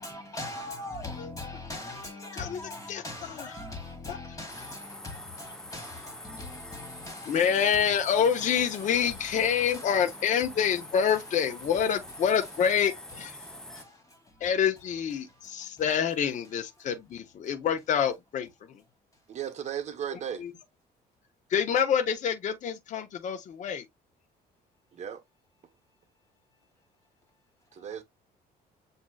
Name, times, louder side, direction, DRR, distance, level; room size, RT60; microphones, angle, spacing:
voice 1, 0.3-1.9 2.7-2.8 3.0-3.2 4.4-4.5 5.7-5.8, left 2 dB, 20° left, 2.3 m, -37 dB
voice 2, 2.9-3.5 4.1-4.2 7.3-13.4 14.4-18.8 20.1-20.5 21.5-23.9, left 8 dB, 45° left, 0.7 m, -27 dB
sound 1, 4.5-13.8, left 1 dB, 5° left, 0.7 m, -45 dB
voice 3, 19.3-20.4 24.9-25.2 27.7-28.0, right 9 dB, 40° right, 0.9 m, -35 dB
7.3 x 2.7 x 2.2 m
cardioid pair, 110°, 17 cm